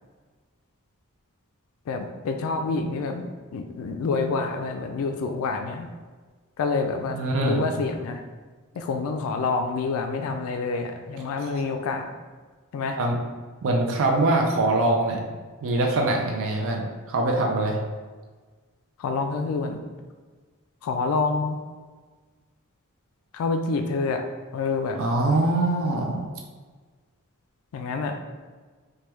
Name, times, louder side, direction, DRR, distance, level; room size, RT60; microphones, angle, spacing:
voice 1, 1.9-5.9 6.6-8.2 8.8-12.1 12.7-13.0 19.0-19.8 20.8-21.6 23.3-24.2 24.5-25.0 27.7-28.2, left 4 dB, 70° left, 6 dB, 0.3 m, -27 dB
voice 2, 7.1-7.6 11.4-11.6 13.0-13.2 13.6-15.2 15.6-17.8 25.0-26.3, right 2 dB, 60° right, 1 dB, 0.4 m, -23 dB
3.3 x 2.2 x 3.0 m, 1.4 s
head